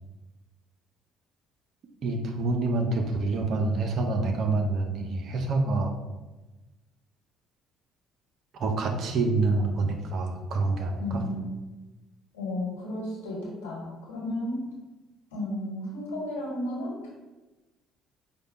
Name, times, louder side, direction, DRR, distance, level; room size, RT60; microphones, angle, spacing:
voice 1, 2.0-5.9 8.6-11.2, right 3 dB, 55° right, 4 dB, 0.7 m, -27 dB
voice 2, 11.0-11.6 12.3-14.6 15.3-17.1, left 1 dB, 80° left, -4 dB, 1.4 m, -33 dB
5.1 x 2.3 x 4.1 m, 1.1 s
hypercardioid pair, 50°, 0 cm